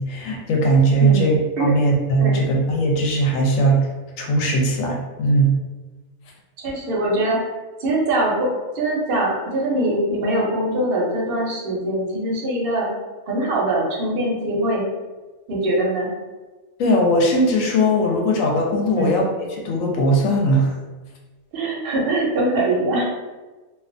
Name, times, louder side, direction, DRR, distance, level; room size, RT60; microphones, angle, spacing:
voice 1, 0.0-3.9 4.2-5.6 16.8-19.3 19.6-20.7, right 1 dB, 70° left, 0 dB, 0.9 m, -19 dB
voice 2, 1.0-1.7 2.2-2.4 6.6-7.4 7.8-8.5 8.7-12.9 13.3-14.9 15.5-16.1 18.9-19.2 21.5-23.0, right 1 dB, 55° right, -3 dB, 0.6 m, -22 dB
2.3 x 2.2 x 2.5 m, 1.2 s
omnidirectional pair, 1.5 m